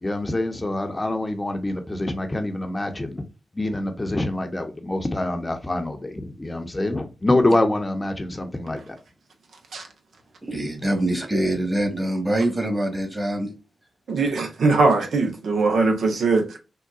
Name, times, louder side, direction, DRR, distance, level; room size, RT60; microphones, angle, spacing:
voice 1, 0.0-3.2 3.5-9.0, left 1 dB, 25° left, 0.7 m, -25 dB
voice 2, 10.4-13.5, right 1 dB, 25° right, 1.3 m, -24 dB
voice 3, 14.1-16.6, right 3 dB, 75° right, 0.6 m, -21 dB
3.7 x 2.2 x 2.4 m
supercardioid pair, 40°, 0 cm